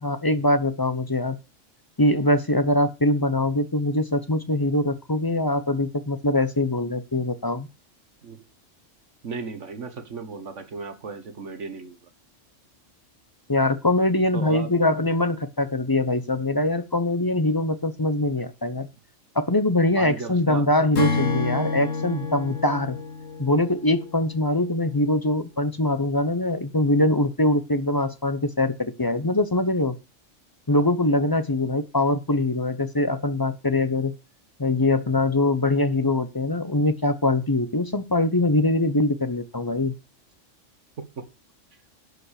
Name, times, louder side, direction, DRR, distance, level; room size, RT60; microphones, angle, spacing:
voice 1, 0.0-1.4 2.0-7.7 13.5-18.9 19.3-23.0 23.4-30.0 30.7-34.1 34.6-39.9, left 1 dB, 20° left, 11 dB, 0.7 m, -23 dB
voice 2, 9.2-12.0 14.3-14.7 20.0-20.7 41.0-41.3, right 4 dB, 70° right, 10 dB, 1.7 m, -35 dB
Acoustic guitar / Strum, 21.0-24.4, left 4 dB, 80° left, 1.9 m, -28 dB
11.5 x 5.3 x 6.5 m, 0.29 s
omnidirectional pair, 1.3 m